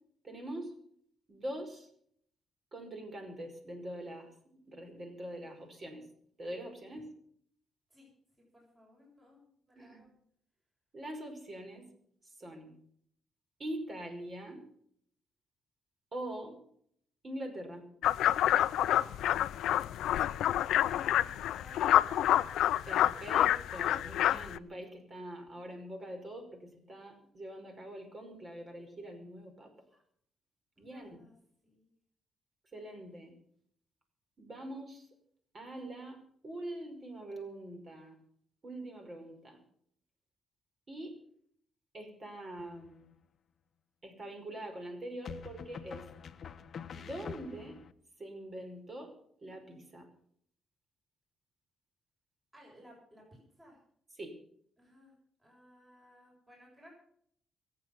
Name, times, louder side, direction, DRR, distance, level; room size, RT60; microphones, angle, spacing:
voice 1, 0.2-0.7 1.3-1.9 2.7-4.3 4.6-6.1 6.4-7.1 9.8-10.0 10.9-11.9 12.4-12.7 13.6-14.6 16.1-16.6 17.2-17.9 22.9-26.6 26.9-29.7 30.8-31.2 32.7-33.3 34.4-35.1 35.5-38.2 38.6-39.6 40.9-41.2 41.9-43.1 44.0-46.1 46.9-47.8 48.2-49.1 49.4-50.1 54.2-54.4, right 1 dB, 35° right, 5 dB, 5.3 m, -43 dB
voice 2, 8.4-10.1 20.9-22.5 30.8-31.4 31.6-31.9 52.5-53.8 54.8-55.1 55.4-56.9, left 1 dB, 15° right, -2 dB, 7.3 m, -58 dB
sound 1, 18.0-24.6, left 12 dB, 80° left, 0.6 m, -28 dB
sound 2, 42.6-43.2 45.2-47.9, left 7 dB, 55° left, 0.9 m, -46 dB
24.0 x 8.4 x 5.9 m, 0.65 s
cardioid pair, 90°, 0 cm